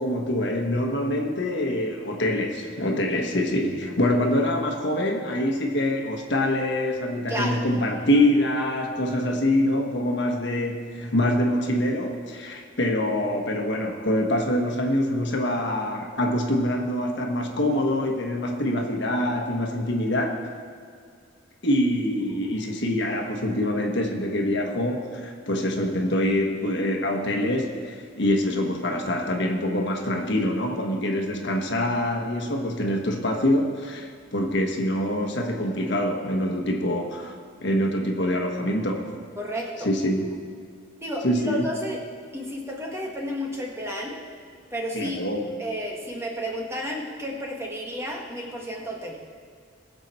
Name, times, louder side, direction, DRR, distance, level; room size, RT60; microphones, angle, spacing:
voice 1, 0.0-20.5 21.6-39.2 39.8-40.3 41.2-41.7 44.9-45.5, left 1 dB, 60° left, 2 dB, 1.4 m, -25 dB
voice 2, 7.3-7.7 39.4-39.9 41.0-42.0 42.3-44.2 44.7-45.2 45.6-49.2, equal, 15° right, -1 dB, 1.5 m, -32 dB
20.5 x 7.0 x 4.4 m, 2.1 s
head